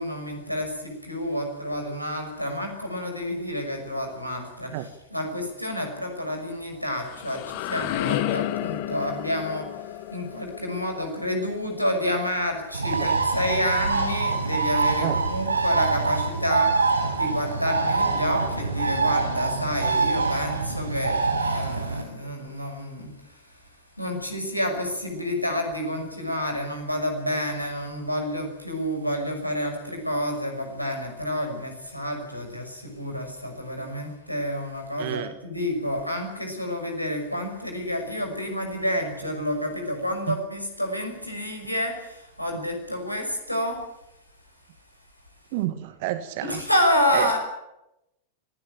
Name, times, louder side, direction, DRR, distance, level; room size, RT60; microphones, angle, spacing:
voice 1, 0.0-4.8 5.1-9.7 10.1-23.1 24.0-43.8 46.4-47.4, left 1 dB, 90° left, 3 dB, 5.9 m, -29 dB
sound 1, 6.7-12.5, left 14 dB, 45° left, 1.4 m, -32 dB
Bird, 12.7-22.0, right 4 dB, 75° right, 6.7 m, -25 dB
voice 2, 35.0-35.3 40.3-40.4 42.5-42.6 45.5-46.6 47.1-47.3, right 14 dB, 50° right, 11 dB, 1.6 m, -30 dB
25.0 x 16.0 x 8.7 m, 0.90 s
figure-of-eight pair, 90°, 0 cm